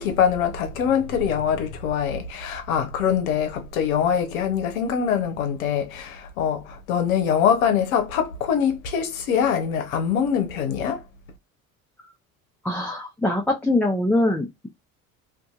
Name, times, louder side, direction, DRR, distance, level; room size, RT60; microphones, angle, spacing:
voice 1, 0.0-11.0, left 8 dB, 80° left, 0.7 m, -23 dB
voice 2, 12.6-14.7, left 1 dB, 5° left, 0.6 m, -23 dB
2.6 x 2.5 x 2.3 m
hypercardioid pair, 65°, 41 cm